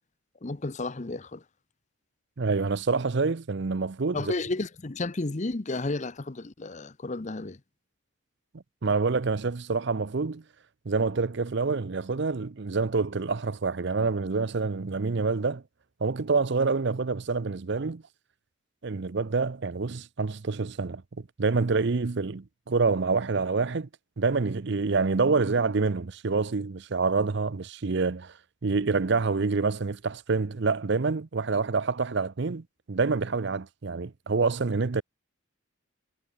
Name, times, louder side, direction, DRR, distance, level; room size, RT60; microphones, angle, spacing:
voice 1, 0.4-1.4 4.1-7.6, left 2 dB, 35° left, 0.7 m, -32 dB
voice 2, 2.4-4.3 8.8-10.4 10.9-15.6 16.0-18.0 18.8-23.9 24.2-28.3 28.6-35.0, right 4 dB, 55° right, 0.6 m, -27 dB
head